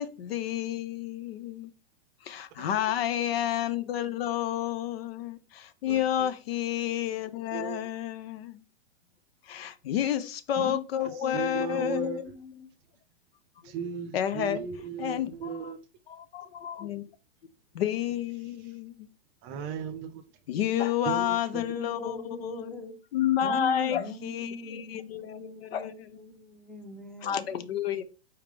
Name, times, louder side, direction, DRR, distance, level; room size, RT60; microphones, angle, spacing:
voice 1, 0.0-1.7 2.2-8.6 9.5-12.2 13.6-13.7 14.1-14.6 15.0-15.8 16.1-17.0 17.7-19.1 20.5-22.8 23.1-26.2 27.2-28.0, left 10 dB, 60° left, 0.6 m, -30 dB
voice 2, 5.9-6.3 7.5-7.8 10.6-10.7 11.3-12.2 13.6-15.8 19.4-20.2 21.1-21.6, right 7 dB, 35° right, 0.6 m, -36 dB
voice 3, 11.8-12.7 20.6-20.8 21.4-23.0 23.4-27.6, left 2 dB, 5° left, 0.7 m, -40 dB
4.5 x 3.6 x 3.2 m
hypercardioid pair, 120°, 34 cm